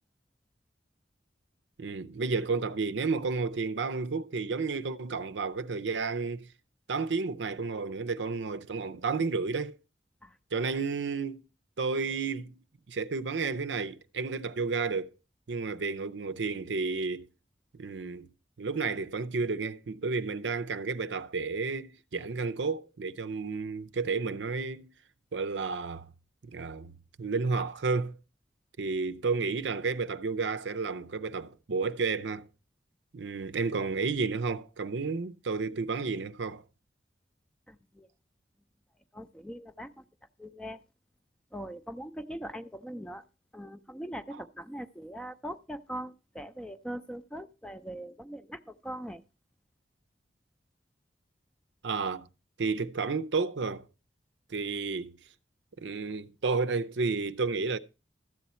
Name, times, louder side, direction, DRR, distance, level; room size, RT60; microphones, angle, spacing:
voice 1, 1.8-6.5 6.9-9.8 10.5-11.4 11.8-12.6 12.9-15.1 15.5-17.3 17.7-18.3 18.6-24.9 25.3-26.1 26.4-26.9 27.2-28.2 28.8-32.5 33.1-36.6 51.8-52.3 52.6-53.9 54.5-55.2 55.8-57.8, right 4 dB, 80° right, 0.6 m, -31 dB
voice 2, 37.7-38.1 39.1-40.0 40.4-40.8 41.5-43.2 43.5-49.2, equal, 5° left, 0.5 m, -41 dB
13.5 x 8.2 x 4.2 m
head